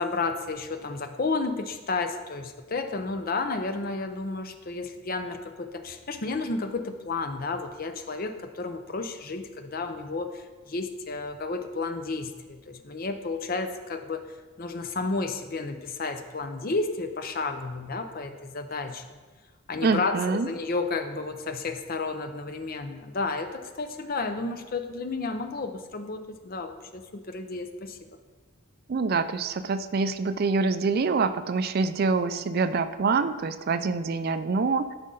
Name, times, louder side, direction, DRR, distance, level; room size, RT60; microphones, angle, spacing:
voice 1, 0.0-14.3 14.6-19.0 19.7-28.0, left 3 dB, 45° left, 8 dB, 0.6 m, -32 dB
voice 2, 19.8-20.5 28.9-34.9, right 4 dB, 45° right, 12 dB, 0.3 m, -25 dB
12.0 x 5.3 x 3.8 m, 1.3 s
head